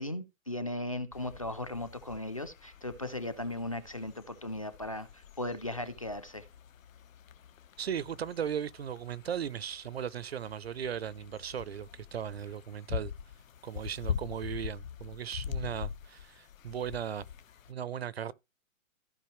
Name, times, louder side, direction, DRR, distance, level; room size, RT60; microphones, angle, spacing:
voice 1, 0.0-6.4, left 1 dB, 25° left, 0.4 m, -37 dB
sound 1, 1.1-17.7, left 8 dB, 75° left, 1.1 m, -43 dB
voice 2, 7.8-13.1 13.6-17.3 17.7-18.3, right 8 dB, 50° right, 0.5 m, -37 dB
15.0 x 5.2 x 3.1 m
hypercardioid pair, 175°, 40 cm